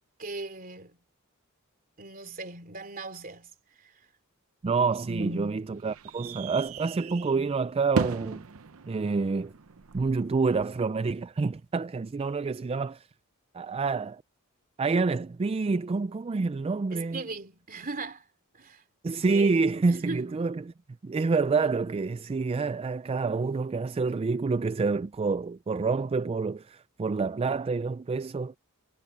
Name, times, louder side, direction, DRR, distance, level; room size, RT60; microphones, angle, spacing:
voice 1, 0.2-0.9 2.0-3.5 3.8-3.9 5.0-5.6 16.9-18.2 18.5-18.8 19.3-19.5 19.9-20.3, right 2 dB, 40° right, 3.0 m, -37 dB
voice 2, 4.6-8.5 8.9-9.5 9.9-13.1 13.5-14.2 14.8-17.2 19.0-20.7 21.0-28.5, right 4 dB, 25° right, 0.3 m, -28 dB
sound 1, 4.6-10.6, right 4 dB, 70° right, 0.7 m, -38 dB
head